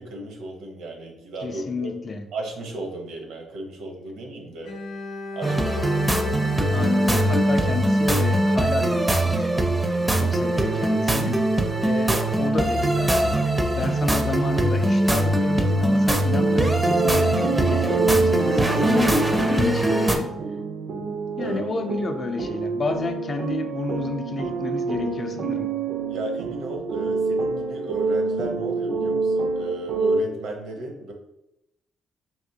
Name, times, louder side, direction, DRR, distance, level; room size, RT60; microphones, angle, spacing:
voice 1, 0.0-2.0 2.3-4.7 5.3-6.1 9.9-10.1 18.4-19.0 21.4-21.7 26.1-31.1, right 2 dB, 85° right, 1 dB, 0.8 m, -34 dB
voice 2, 1.4-2.3 6.7-9.5 10.1-11.5 11.8-13.5 13.7-20.4 21.4-25.8, left 4 dB, 40° left, 6 dB, 0.4 m, -30 dB
Bowed string instrument, 4.6-8.7, left 3 dB, 85° left, 0.6 m, -36 dB
sound 1, 5.4-20.2, right 1 dB, 15° right, 0.5 m, -22 dB
sound 2, 16.3-30.2, right 4 dB, 70° right, 0.4 m, -27 dB
3.4 x 2.8 x 2.7 m, 0.87 s
cardioid pair, 90°, 0 cm